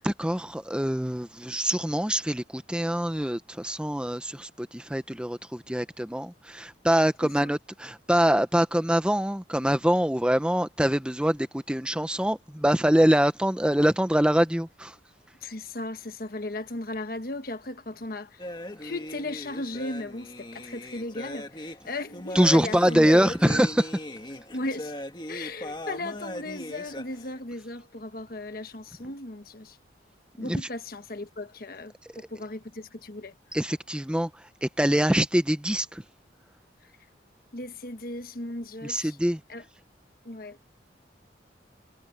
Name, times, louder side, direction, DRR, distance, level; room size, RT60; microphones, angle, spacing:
voice 1, 0.0-14.9 22.3-23.9 30.4-30.6 33.5-34.3 34.6-36.0 38.9-39.4, equal, 5° right, 0.9 m, -24 dB
voice 2, 7.2-7.5 15.4-18.5 18.8-23.6 24.5-24.9 25.3-29.8 30.4-33.3 36.8-36.9 37.5-39.2 39.5-39.6 40.2-40.6, left 2 dB, 50° left, 1.3 m, -36 dB
sound 1, 18.4-27.4, left 1 dB, 25° left, 1.8 m, -39 dB
head